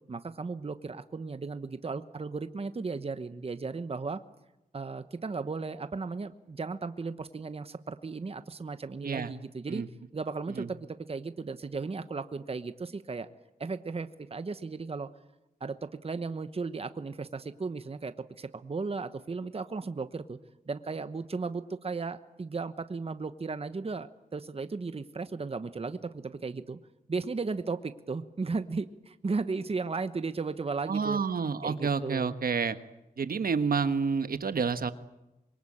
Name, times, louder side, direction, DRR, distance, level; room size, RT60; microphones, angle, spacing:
voice 1, 0.1-4.2 4.7-9.8 10.1-13.3 13.6-15.1 15.6-20.4 20.7-26.8 27.1-31.2 31.6-32.4, right 4 dB, 40° right, 11 dB, 1.1 m, -35 dB
voice 2, 30.9-32.8 33.2-34.9, right 5 dB, 75° right, 11 dB, 1.4 m, -29 dB
26.5 x 23.0 x 8.8 m, 0.97 s
wide cardioid pair, 105°, 15 cm